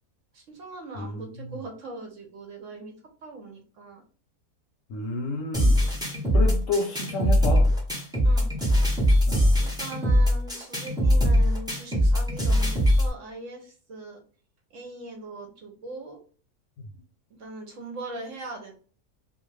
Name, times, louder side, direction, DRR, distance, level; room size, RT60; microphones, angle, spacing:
voice 1, 0.3-2.9 3.2-4.0 8.2-8.5 9.6-14.2 14.7-16.2 17.4-18.7, right 2 dB, 65° right, 0.9 m, -40 dB
voice 2, 1.0-1.6 4.9-5.8 6.3-7.7 9.3-9.5, left 3 dB, 65° left, 0.9 m, -30 dB
sound 1, 5.5-13.1, equal, 5° right, 0.5 m, -21 dB
2.5 x 2.3 x 3.1 m
omnidirectional pair, 1.6 m